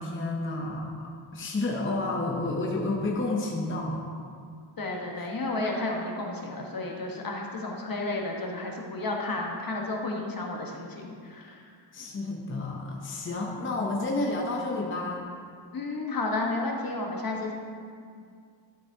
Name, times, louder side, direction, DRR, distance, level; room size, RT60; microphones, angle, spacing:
voice 1, 0.0-4.0 11.9-15.2, left 2 dB, 25° left, -1 dB, 0.7 m, -30 dB
voice 2, 4.8-11.6 15.7-17.5, left 2 dB, 45° left, 0 dB, 1.3 m, -32 dB
12.0 x 8.0 x 2.8 m, 2.2 s
wide cardioid pair, 160°, 49 cm